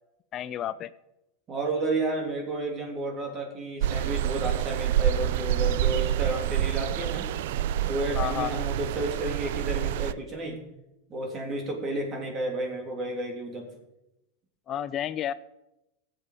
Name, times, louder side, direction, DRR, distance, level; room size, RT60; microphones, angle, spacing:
voice 1, 0.3-0.9 8.1-8.6 14.7-15.3, left 11 dB, 35° left, 13 dB, 0.4 m, -31 dB
voice 2, 1.5-7.2 7.9-10.6 11.1-13.7, right 2 dB, 30° right, 2 dB, 3.0 m, -31 dB
sound 1, 3.8-10.1, right 12 dB, 70° right, 0.4 m, -27 dB
17.5 x 7.6 x 4.9 m, 0.91 s
supercardioid pair, 135°, 0 cm